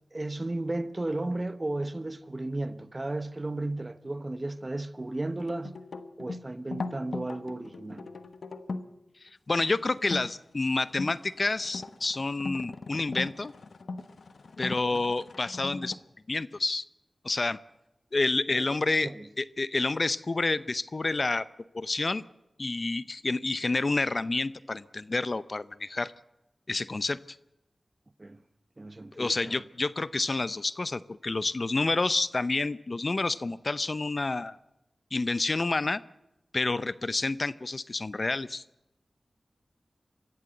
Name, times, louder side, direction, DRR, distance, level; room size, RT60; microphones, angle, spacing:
voice 1, 0.1-5.8 6.2-8.1 14.8-15.0 18.5-18.7 19.0-19.3 28.2-28.4 28.8-29.6, right 2 dB, 35° right, 1.0 m, -34 dB
sound 1, 5.4-8.9 10.0-10.3 10.8-16.0, left 3 dB, 80° left, 1.1 m, -39 dB
voice 2, 9.2-13.5 14.6-16.0 16.3-16.8 17.2-17.6 18.1-19.1 19.4-21.5 21.7-22.2 22.6-26.1 26.7-27.4 29.2-34.6 35.1-36.0 36.5-38.6, left 3 dB, 50° left, 0.7 m, -29 dB
24.0 x 15.0 x 7.9 m
cardioid pair, 50°, 0 cm